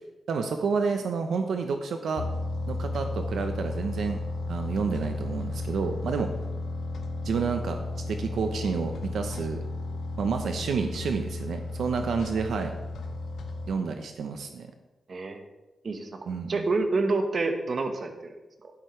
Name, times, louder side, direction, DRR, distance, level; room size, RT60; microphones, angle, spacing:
voice 1, 0.3-2.2 2.6-4.2 4.5-6.3 7.2-7.8 8.1-9.6 10.2-12.7 13.7-14.7 16.3-16.7, right 5 dB, 80° right, 5 dB, 0.9 m, -29 dB
sound 1, 2.2-13.7, left 2 dB, 85° left, 1.1 m, -34 dB
voice 2, 15.1-15.4 15.8-18.7, right 3 dB, 45° right, 6 dB, 1.3 m, -29 dB
11.5 x 11.0 x 3.3 m, 1.0 s
wide cardioid pair, 110°, 0 cm